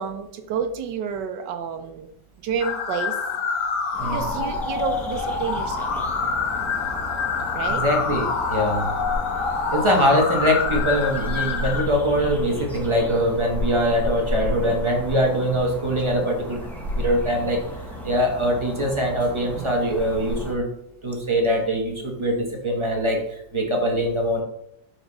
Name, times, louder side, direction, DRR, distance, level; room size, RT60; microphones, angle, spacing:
voice 1, 0.0-2.1 2.4-3.2 4.0-5.9 7.5-7.8 14.7-14.8 19.5-19.7, right 7 dB, 70° right, 8 dB, 1.2 m, -29 dB
sound 1, 2.6-11.8, left 5 dB, 70° left, 1.4 m, -26 dB
sound 2, 3.9-20.5, equal, ahead, 0.7 m, -33 dB
voice 2, 4.0-4.3 7.6-8.9 9.7-16.6 17.0-17.6 18.0-20.7 21.0-23.2 23.5-24.4, equal, 20° right, 0 dB, 0.9 m, -22 dB
6.0 x 5.1 x 4.0 m, 0.74 s
omnidirectional pair, 2.1 m